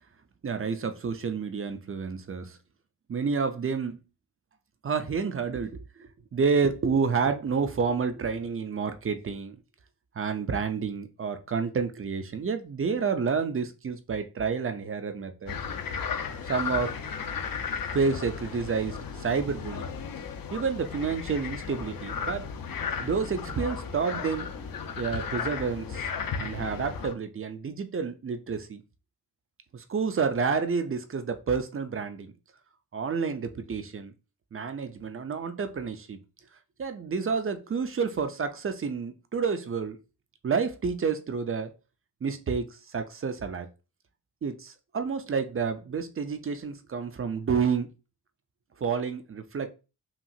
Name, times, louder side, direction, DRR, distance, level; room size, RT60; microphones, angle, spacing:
voice 1, 0.4-2.6 3.1-4.0 4.8-9.6 10.2-15.6 16.4-17.0 17.9-19.9 20.5-22.5 23.0-24.5 25.0-26.1 26.4-28.8 29.7-32.3 32.9-34.1 34.5-36.2 36.8-40.0 40.4-41.7 42.2-43.7 44.4-47.9 48.8-49.7, right 5 dB, 35° right, 0.4 m, -29 dB
sound 1, 15.5-27.1, left 6 dB, 55° left, 0.6 m, -35 dB
5.8 x 2.4 x 2.6 m
wide cardioid pair, 145°, 43 cm